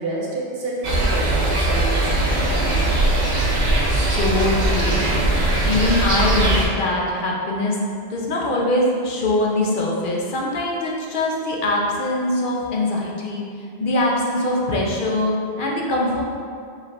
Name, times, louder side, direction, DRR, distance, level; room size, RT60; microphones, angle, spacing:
voice 1, 0.0-2.8, right 2 dB, 65° right, -4 dB, 1.0 m, -29 dB
sound 1, 0.8-6.6, right 2 dB, 45° right, 0.7 m, -20 dB
voice 2, 3.9-7.8 8.1-13.5 13.8-16.2, left 2 dB, 55° left, -2 dB, 0.8 m, -23 dB
5.2 x 3.2 x 2.5 m, 2.3 s
omnidirectional pair, 1.1 m